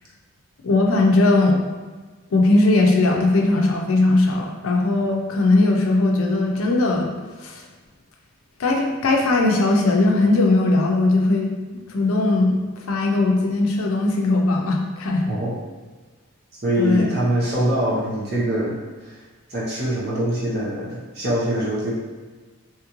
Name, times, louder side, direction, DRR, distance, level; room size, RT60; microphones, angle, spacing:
voice 1, 0.6-1.6 2.3-7.1 7.4-7.6 8.6-11.5 11.9-12.5 12.9-15.3 16.8-17.1, left 2 dB, 75° left, 1 dB, 0.5 m, -19 dB
voice 2, 15.2-15.6 16.6-19.2 19.5-22.0, right 1 dB, 50° right, -7 dB, 0.8 m, -24 dB
2.8 x 2.4 x 2.9 m, 1.4 s
head